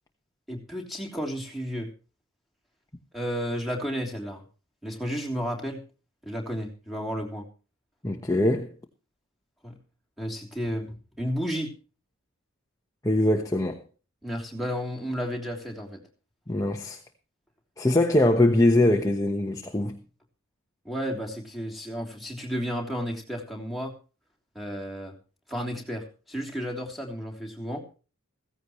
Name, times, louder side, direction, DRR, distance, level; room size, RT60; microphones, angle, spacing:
voice 1, 0.5-1.9 3.1-4.4 4.8-5.8 6.2-7.4 9.6-9.8 10.2-11.7 14.2-16.0 20.8-23.9 24.5-25.1 25.5-27.8, equal, ahead, 3.2 m, -32 dB
voice 2, 8.0-8.7 13.0-13.8 16.5-17.0 17.8-20.0, left 1 dB, 15° left, 1.1 m, -22 dB
16.0 x 15.5 x 3.1 m
head